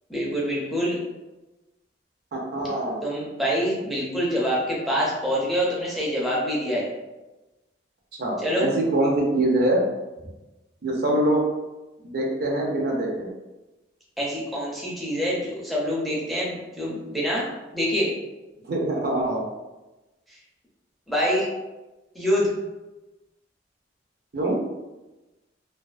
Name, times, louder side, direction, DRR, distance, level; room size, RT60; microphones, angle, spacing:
voice 1, 0.1-1.0 3.0-6.9 8.4-8.7 14.2-17.5 17.7-18.1 21.1-21.5 22.1-22.5, equal, ahead, -6 dB, 0.5 m, -25 dB
voice 2, 2.3-3.0 8.2-9.8 10.8-11.4 12.0-13.3 18.6-19.4 24.3-24.7, right 1 dB, 55° right, -1 dB, 0.5 m, -24 dB
2.4 x 2.3 x 2.4 m, 1.1 s
head